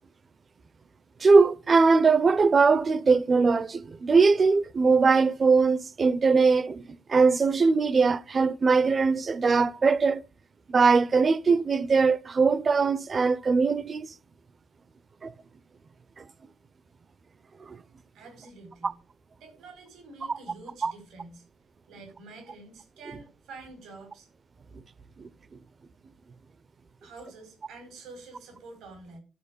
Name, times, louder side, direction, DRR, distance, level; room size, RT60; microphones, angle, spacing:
voice 1, 1.2-6.8 7.1-10.2 10.7-14.1 15.2-15.3 16.2-16.3 17.7-17.8 18.8-18.9 20.3-20.4 20.8-20.9 25.2-25.3, right 4 dB, 40° right, 0.7 m, -21 dB
voice 2, 18.1-18.9 19.4-21.4 21.9-24.3 27.0-29.2, right 3 dB, 90° right, 4.8 m, -47 dB
11.5 x 4.9 x 8.4 m
cardioid pair, 110°, 0 cm